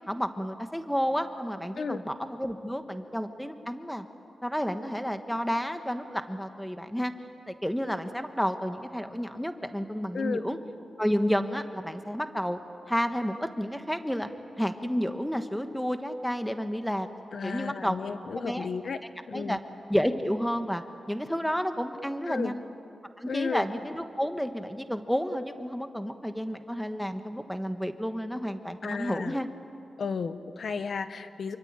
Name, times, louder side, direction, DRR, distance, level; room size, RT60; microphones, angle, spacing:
voice 1, 0.1-4.1 4.4-7.1 7.5-10.6 11.0-12.6 12.9-14.3 14.6-17.1 17.4-18.7 19.3-19.6 19.9-22.6 23.2-29.5, equal, ahead, 7 dB, 1.3 m, -31 dB
voice 2, 17.3-19.0 19.3-19.6 22.3-22.5 23.3-23.6 28.8-29.3 30.0-31.6, left 5 dB, 55° left, 10 dB, 1.2 m, -33 dB
27.5 x 24.0 x 8.9 m, 2.5 s
wide cardioid pair, 155°, 0 cm